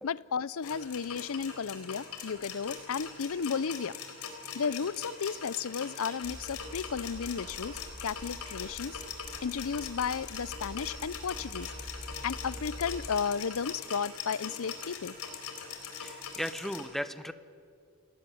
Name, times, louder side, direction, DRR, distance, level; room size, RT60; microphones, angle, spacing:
voice 1, 0.0-3.9 4.5-9.0 9.4-11.7 12.2-15.2, left 6 dB, 65° left, 21 dB, 0.5 m, -34 dB
sound 1, 0.6-16.8, left 6 dB, 90° left, 4.2 m, -42 dB
sound 2, 6.2-13.2, equal, 20° right, 2.3 m, -46 dB
voice 2, 16.0-17.3, equal, ahead, 12 dB, 0.9 m, -36 dB
29.5 x 18.5 x 8.6 m, 2.3 s
head